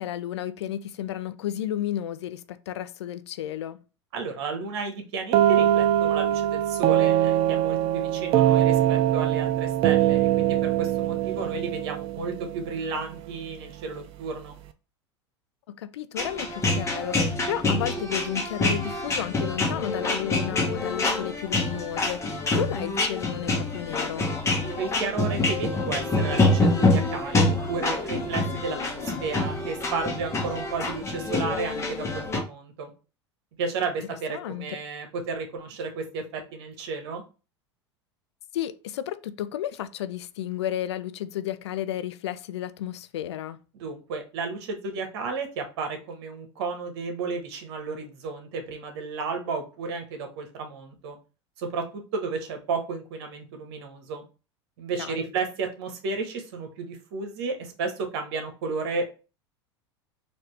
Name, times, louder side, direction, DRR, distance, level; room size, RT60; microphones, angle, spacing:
voice 1, 0.0-3.8 15.7-24.3 34.3-34.7 38.5-43.6 55.0-55.3, left 11 dB, 70° left, 0.4 m, -32 dB
voice 2, 4.1-14.5 24.8-32.9 33.6-37.2 43.7-51.2 51.6-54.2 54.8-59.1, right 4 dB, 60° right, 1.1 m, -33 dB
sound 1, 5.3-13.0, right 12 dB, 40° right, 0.5 m, -22 dB
sound 2, 16.2-32.4, left 2 dB, 20° left, 1.1 m, -26 dB
4.2 x 2.7 x 3.2 m
hypercardioid pair, 85°, 15 cm